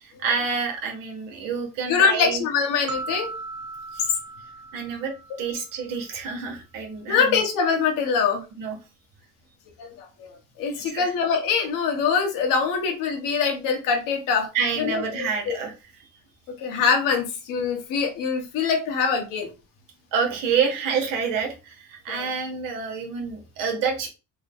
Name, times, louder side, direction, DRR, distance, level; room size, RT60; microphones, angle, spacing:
voice 1, 0.0-2.4 3.9-4.1 4.7-5.1 5.4-7.4 8.6-8.8 10.9-11.1 14.5-15.7 16.0-16.1 16.8-16.9 20.1-24.1, right 6 dB, 75° right, 3 dB, 1.4 m, -28 dB
voice 2, 1.9-3.3 7.1-8.4 9.8-14.5 14.8-15.6 16.6-19.5 22.1-22.3, left 6 dB, 75° left, 3 dB, 1.2 m, -24 dB
sound 1, 2.9-6.0, right 3 dB, 60° right, 0.7 m, -37 dB
3.7 x 2.3 x 3.5 m, 0.30 s
cardioid pair, 100°, 33 cm